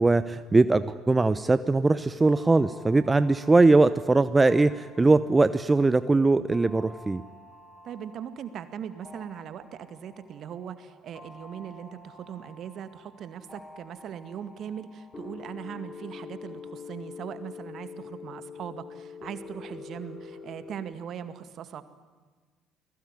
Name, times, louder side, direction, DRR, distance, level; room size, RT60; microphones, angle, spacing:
voice 1, 0.0-7.2, right 3 dB, 20° right, 13 dB, 0.9 m, -21 dB
sound 1, 1.5-20.9, left 4 dB, 25° left, 3.8 m, -46 dB
voice 2, 7.8-21.8, right 9 dB, 50° right, 11 dB, 2.1 m, -40 dB
29.5 x 20.0 x 9.9 m, 1.4 s
figure-of-eight pair, 50°, 0 cm